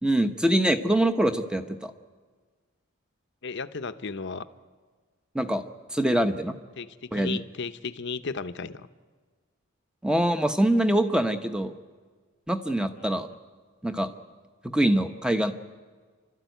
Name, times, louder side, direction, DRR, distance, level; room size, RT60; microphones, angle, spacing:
voice 1, 0.0-1.9 5.3-5.6 5.9-6.5 7.1-7.4 10.0-11.7 12.5-13.3 13.8-14.1 14.6-15.5, right 1 dB, 5° right, 8 dB, 0.9 m, -24 dB
voice 2, 3.4-4.4 6.8-8.9 13.0-13.2, left 4 dB, 55° left, 11 dB, 0.8 m, -35 dB
29.5 x 12.5 x 9.2 m, 1.5 s
head